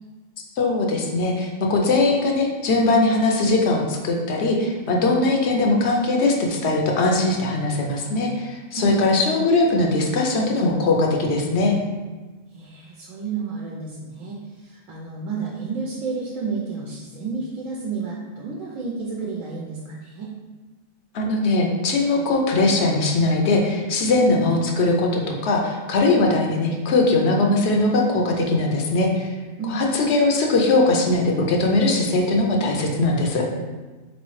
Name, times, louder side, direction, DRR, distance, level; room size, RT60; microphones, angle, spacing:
voice 1, 0.6-11.7 21.1-29.3 29.7-33.4, left 2 dB, 65° left, 0 dB, 0.8 m, -20 dB
voice 2, 8.7-9.0 12.5-20.3 29.6-29.9, right 4 dB, 85° right, -3 dB, 1.0 m, -31 dB
3.9 x 3.1 x 3.1 m, 1.3 s
omnidirectional pair, 1.3 m